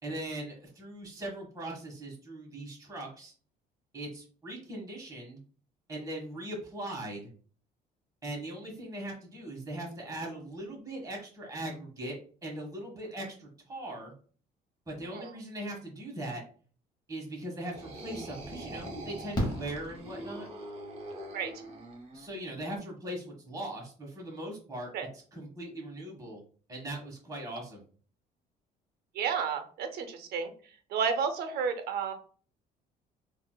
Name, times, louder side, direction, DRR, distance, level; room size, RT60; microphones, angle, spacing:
voice 1, 0.0-3.3 3.9-5.4 5.9-7.3 8.2-14.1 14.9-16.4 17.1-20.5 22.1-24.9 25.3-26.4 26.7-27.8, right 1 dB, 20° right, -1 dB, 1.3 m, -40 dB
sound 1, 17.6-22.4, right 1 dB, 40° right, 0.9 m, -43 dB
Fireworks, 19.3-20.7 22.4-22.5 22.7-22.8, equal, 25° left, 1.1 m, -34 dB
voice 2, 29.1-30.5 30.9-32.1, right 6 dB, 70° right, 8 dB, 0.6 m, -31 dB
3.7 x 2.5 x 2.2 m, 0.42 s
cardioid pair, 110°, 17 cm